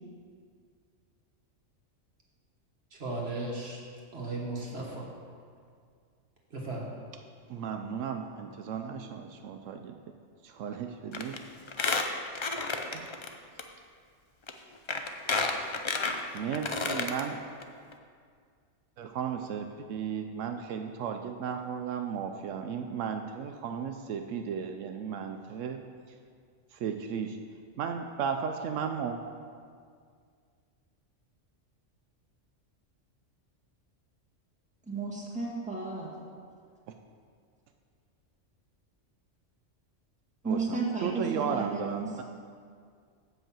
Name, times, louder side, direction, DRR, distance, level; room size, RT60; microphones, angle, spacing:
voice 1, 2.9-3.8 4.1-5.0 6.5-6.8, right 2 dB, 55° right, -2 dB, 1.7 m, -36 dB
voice 2, 7.5-9.9 10.4-11.4 12.9-13.1 16.3-17.4 19.0-25.8 26.7-27.4 27.8-29.2 40.4-42.2, right 7 dB, 85° right, 6 dB, 0.9 m, -35 dB
Squeak, 11.1-11.4 11.7-13.3 13.6-13.7 14.5-14.6 14.9-17.2 17.6-17.7 17.9-18.0, left 4 dB, 45° left, 0.3 m, -30 dB
voice 3, 34.9-36.1 40.4-42.2, right 4 dB, 5° right, -5 dB, 1.8 m, -33 dB
7.9 x 5.4 x 7.5 m, 2.1 s
omnidirectional pair, 1.3 m